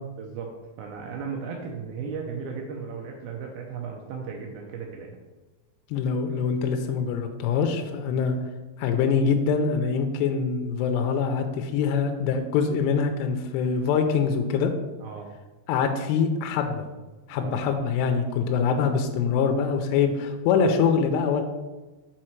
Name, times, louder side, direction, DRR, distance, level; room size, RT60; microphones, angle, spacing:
voice 1, 0.2-0.5 0.8-5.2 8.1-8.2 15.0-15.3 17.3-17.5, right 5 dB, 85° right, 0 dB, 2.1 m, -36 dB
voice 2, 5.9-8.4 8.8-14.7 15.7-16.9 17.3-21.4, left 6 dB, 85° left, 5 dB, 2.6 m, -24 dB
6.4 x 4.3 x 4.4 m, 1.2 s
omnidirectional pair, 5.2 m